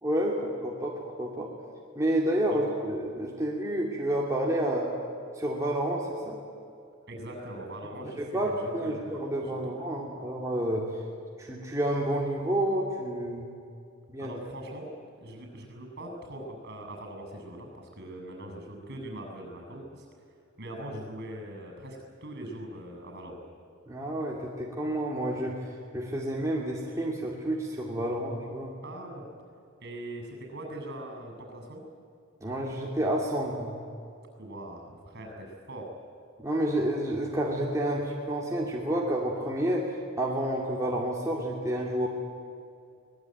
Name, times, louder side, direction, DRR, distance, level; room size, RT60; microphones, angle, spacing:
voice 1, 0.0-0.9 1.2-1.5 1.9-4.9 5.4-6.4 8.2-10.8 11.4-13.4 14.1-14.3 23.9-25.6 25.9-28.7 32.4-33.7 36.4-42.1, right 1 dB, 15° right, -3 dB, 2.5 m, -29 dB
voice 2, 7.1-9.1 9.4-9.7 14.2-14.9 15.2-20.1 20.6-23.4 28.8-29.2 29.8-31.8 34.4-35.9, right 1 dB, 55° right, 3 dB, 7.4 m, -41 dB
24.0 x 19.5 x 9.3 m, 2.4 s
head